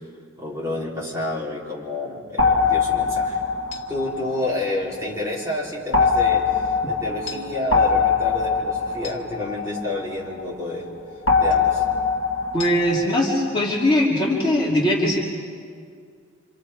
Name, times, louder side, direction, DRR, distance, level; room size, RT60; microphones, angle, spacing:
voice 1, 0.4-3.4 3.9-10.9 11.4-11.8, left 2 dB, 15° right, -6 dB, 3.9 m, -29 dB
sound 1, 2.4-5.2 5.9-10.5 11.3-13.1, left 5 dB, 75° left, 1.7 m, -22 dB
voice 2, 12.5-15.2, left 1 dB, 25° left, -5 dB, 2.9 m, -20 dB
28.0 x 26.5 x 4.9 m, 2.2 s
head